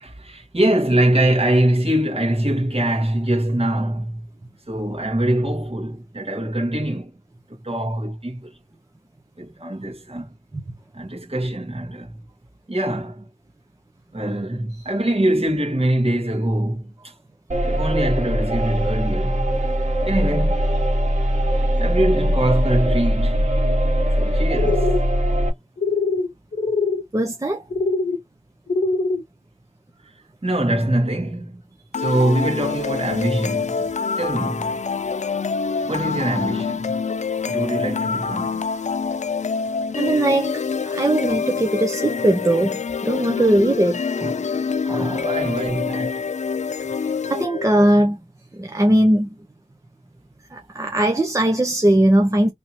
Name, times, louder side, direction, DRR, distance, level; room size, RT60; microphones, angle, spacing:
voice 1, 0.0-4.3 4.7-7.1 7.6-8.5 9.4-10.3 10.9-12.2 12.7-13.3 14.1-17.1 17.7-19.5 20.0-20.6 21.8-23.5 24.2-24.9 30.4-31.6 32.0-33.9 34.2-34.7 35.9-36.9 37.4-38.6 45.1-46.2, right 1 dB, 50° right, 1.8 m, -23 dB
sound 1, 17.5-25.5, equal, 65° right, 2.2 m, -21 dB
sound 2, 24.5-25.0 25.8-26.3 26.5-27.0 27.7-28.2 28.7-29.2, left 3 dB, 85° left, 0.7 m, -22 dB
voice 2, 27.1-27.6 39.9-42.7 43.0-44.4 44.8-45.3 47.3-48.2 48.5-49.3 50.5-52.5, right 1 dB, 25° right, 0.9 m, -19 dB
sound 3, 31.9-47.9, left 5 dB, 65° left, 0.4 m, -26 dB
3.4 x 3.0 x 4.1 m
wide cardioid pair, 65°, 13 cm